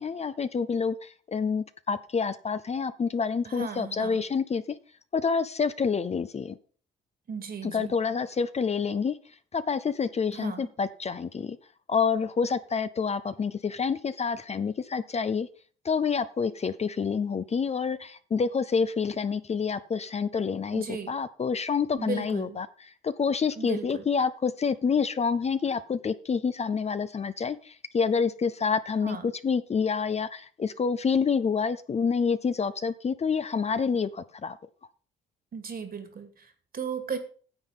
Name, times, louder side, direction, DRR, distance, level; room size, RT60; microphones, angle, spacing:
voice 1, 0.0-4.6 5.1-6.6 7.7-9.2 9.5-11.6 11.9-15.5 15.8-22.7 23.0-29.2 29.4-34.6, left 5 dB, 35° left, 13 dB, 0.6 m, -28 dB
voice 2, 3.5-4.2 7.3-7.9 10.3-10.7 20.7-21.1 22.0-22.6 23.6-24.1 29.0-29.3 35.5-37.2, right 6 dB, 50° right, 8 dB, 2.3 m, -36 dB
9.8 x 7.1 x 5.3 m, 0.42 s
cardioid pair, 90°, 20 cm